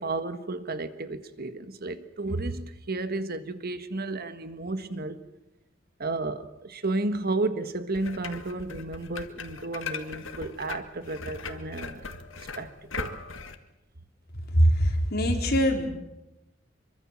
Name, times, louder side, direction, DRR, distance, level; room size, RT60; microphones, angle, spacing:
voice 1, 0.0-5.2 6.0-12.1 12.4-13.1, right 2 dB, 50° right, 1.6 m, -32 dB
sound 1, 7.9-13.5, left 4 dB, 75° left, 1.9 m, -39 dB
voice 2, 14.5-15.9, equal, 55° left, 4.1 m, -22 dB
25.5 x 23.5 x 7.5 m
head